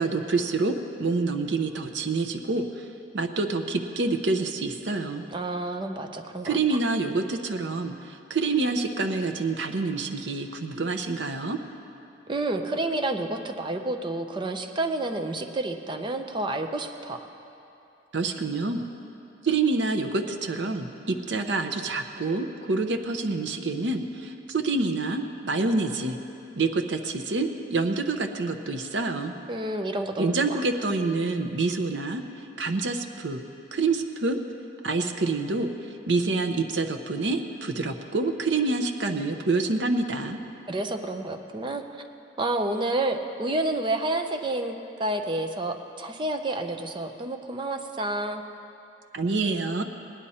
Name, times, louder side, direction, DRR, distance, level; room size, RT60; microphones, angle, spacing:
voice 1, 0.0-2.9 3.1-5.2 6.4-11.6 18.1-18.8 19.4-26.2 26.6-29.3 30.2-32.2 32.6-33.4 33.7-34.4 34.8-35.7 36.1-40.4 49.1-49.8, right 3 dB, 75° right, 5 dB, 0.8 m, -27 dB
voice 2, 5.3-6.8 12.3-17.2 29.5-30.6 40.7-41.8 42.4-48.4, right 2 dB, 25° right, 5 dB, 0.7 m, -29 dB
18.5 x 10.0 x 4.2 m, 2.8 s
head